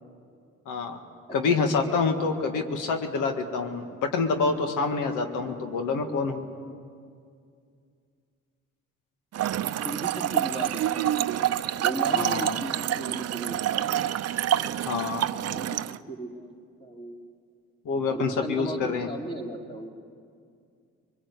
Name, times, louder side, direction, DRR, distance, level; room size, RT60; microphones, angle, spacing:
voice 1, 0.6-1.0 1.3-6.5 12.1-12.6 14.8-15.3 17.8-19.1, left 4 dB, 85° left, 5 dB, 1.8 m, -27 dB
voice 2, 1.5-2.0 9.8-11.2 11.8-13.9 15.5-17.2 18.1-19.9, right 1 dB, 15° left, 1 dB, 3.2 m, -37 dB
Trickle dribble / Fill (with liquid), 9.3-16.0, right 11 dB, 55° right, 0.7 m, -27 dB
24.0 x 20.5 x 8.2 m, 2.3 s
cardioid pair, 90°, 30 cm